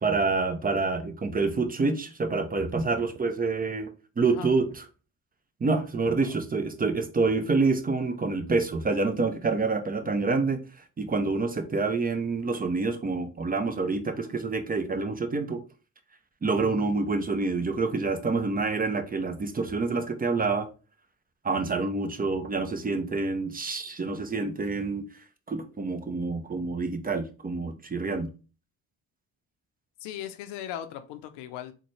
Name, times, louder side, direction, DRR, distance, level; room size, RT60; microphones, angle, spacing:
voice 1, 0.0-3.9 4.2-4.9 5.6-10.6 11.0-15.6 16.4-20.7 21.4-25.0 25.5-28.3, right 3 dB, 20° right, 0.5 m, -27 dB
voice 2, 14.0-14.3 30.0-31.7, left 11 dB, 85° left, 0.6 m, -39 dB
3.8 x 2.2 x 3.0 m
supercardioid pair, 65°, 40 cm